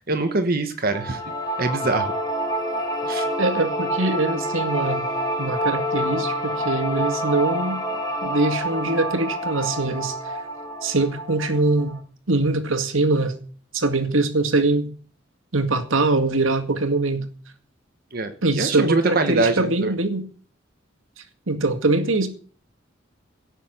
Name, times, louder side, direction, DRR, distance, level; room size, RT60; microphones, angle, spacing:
voice 1, 0.1-1.2 1.6-2.1 3.1-3.3 18.1-18.3 18.6-19.9, right 3 dB, 50° right, 1.3 m, -23 dB
sound 1, 0.9-12.0, equal, 20° left, 3.1 m, -27 dB
voice 2, 3.4-5.1 5.4-7.8 8.2-10.2 10.8-12.0 12.3-13.4 13.7-14.9 15.5-17.3 18.4-20.2 21.5-22.3, right 2 dB, 85° right, 2.1 m, -22 dB
17.0 x 6.7 x 8.0 m
head